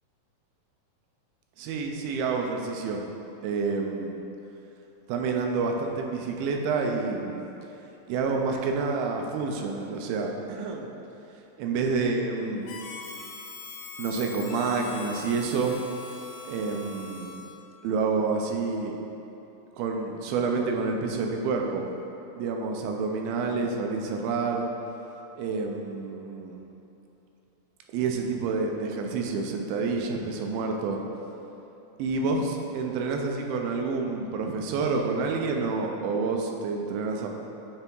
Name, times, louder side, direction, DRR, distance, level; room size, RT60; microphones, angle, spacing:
voice 1, 1.6-3.0 3.4-4.1 5.1-7.4 8.1-10.9 11.6-12.8 14.0-15.7 16.4-17.4 17.8-19.0 19.8-21.8 22.3-24.7 25.4-26.6 27.9-31.0 32.0-37.3, right 4 dB, 90° right, 2 dB, 2.5 m, -28 dB
Harmonica, 12.7-17.7, left 4 dB, 80° left, 2.4 m, -41 dB
9.2 x 3.3 x 4.5 m, 3.0 s
omnidirectional pair, 4.2 m